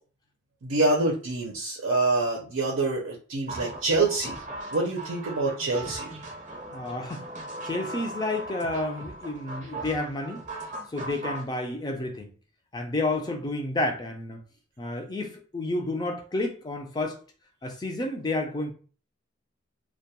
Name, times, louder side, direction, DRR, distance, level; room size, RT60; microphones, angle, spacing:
voice 1, 0.6-4.4 4.7-6.1, right 2 dB, 90° right, 0.6 m, -26 dB
sound 1, 3.5-11.5, right 2 dB, 35° right, 0.6 m, -39 dB
voice 2, 6.7-7.3 7.6-10.4 10.9-12.3 12.7-14.4 14.8-17.2 17.6-18.7, left 2 dB, 20° left, 0.3 m, -30 dB
2.2 x 2.2 x 2.8 m
head